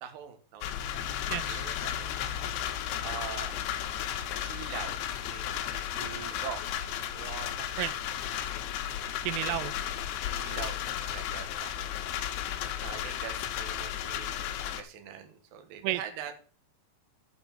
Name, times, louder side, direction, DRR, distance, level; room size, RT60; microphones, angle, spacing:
voice 1, 0.0-2.2 3.0-3.6 4.4-6.6 7.1-7.9 9.4-9.7 10.2-12.0 12.8-16.3, right 8 dB, 60° right, 6 dB, 2.6 m, -43 dB
sound 1, 0.6-14.8, left 10 dB, 75° left, 3.1 m, -34 dB
voice 2, 1.3-1.6 7.8-7.9 9.2-9.7 15.8-16.0, right 16 dB, 90° right, 15 dB, 3.1 m, -31 dB
8.5 x 5.4 x 7.2 m, 0.39 s
omnidirectional pair, 5.5 m